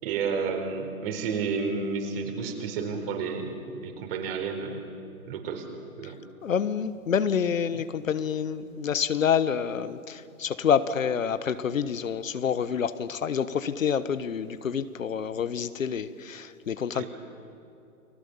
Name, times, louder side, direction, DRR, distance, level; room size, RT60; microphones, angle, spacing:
voice 1, 0.0-4.8 5.3-5.6 6.0-6.2 16.9-17.1, right 5 dB, 40° right, 4 dB, 4.3 m, -31 dB
voice 2, 6.4-17.1, left 7 dB, 65° left, 13 dB, 1.2 m, -27 dB
30.0 x 20.5 x 7.2 m, 2.7 s
figure-of-eight pair, 125°, 43 cm